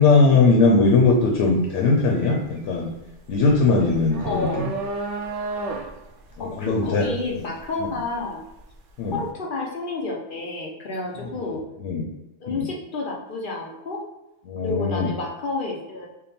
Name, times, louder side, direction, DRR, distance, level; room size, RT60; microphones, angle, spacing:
voice 1, 0.0-2.9 3.3-4.7 6.4-7.1 7.8-7.9 9.0-9.2 11.8-12.0 12.5-12.6 14.5-15.1, left 3 dB, 90° left, 0 dB, 0.9 m, -19 dB
sound 1, 1.1-1.3 1.7-8.7, right 3 dB, 60° right, 0.6 m, -33 dB
voice 2, 4.2-4.6 6.4-8.4 9.1-11.6 12.4-14.0 14.6-16.1, left 3 dB, 55° left, -1 dB, 0.7 m, -30 dB
3.5 x 2.2 x 4.2 m, 0.94 s
omnidirectional pair, 1.2 m